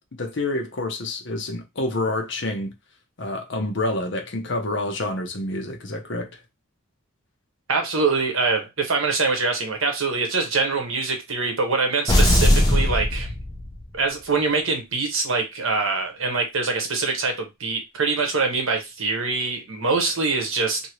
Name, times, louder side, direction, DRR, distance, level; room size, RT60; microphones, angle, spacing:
voice 1, 0.2-2.7 3.2-6.4, left 2 dB, 60° left, 0.7 m, -28 dB
voice 2, 7.7-13.3 13.9-20.8, right 4 dB, 75° right, 1.0 m, -24 dB
sound 1, 12.1-14.0, left 1 dB, 20° left, 0.5 m, -19 dB
2.7 x 2.7 x 3.0 m
head